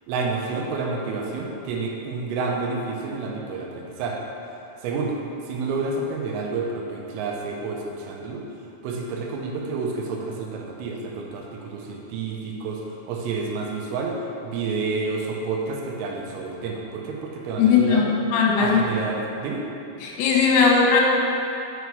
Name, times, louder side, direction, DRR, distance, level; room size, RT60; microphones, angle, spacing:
voice 1, 0.1-4.2 4.8-5.2 5.5-8.5 8.8-14.2 14.4-18.1 18.6-19.6, right 4 dB, 85° right, 0 dB, 3.5 m, -29 dB
voice 2, 17.6-18.8 20.0-21.0, left 5 dB, 85° left, -2 dB, 3.6 m, -18 dB
7.0 x 6.4 x 4.7 m, 2.7 s
omnidirectional pair, 5.8 m